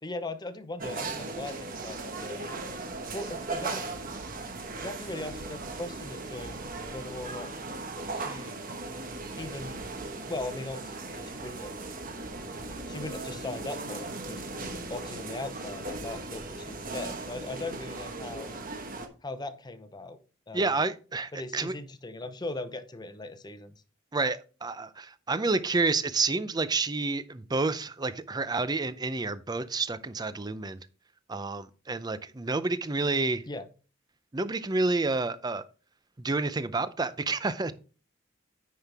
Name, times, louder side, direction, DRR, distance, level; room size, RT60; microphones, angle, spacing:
voice 1, 0.0-2.4 3.1-3.9 4.8-6.5 6.9-7.5 8.1-8.6 9.4-9.8 10.3-11.7 12.9-14.5 14.9-18.5 19.2-20.2 20.5-20.6 21.3-23.8 33.5-33.7, left 2 dB, 20° left, 11 dB, 0.8 m, -39 dB
sound 1, 0.8-19.1, right 3 dB, 45° right, 1.2 m, -38 dB
voice 2, 20.5-21.7 24.1-30.8 31.3-33.4 34.3-35.6 36.2-37.7, right 3 dB, 20° right, 14 dB, 0.5 m, -29 dB
9.4 x 5.7 x 3.4 m, 0.36 s
head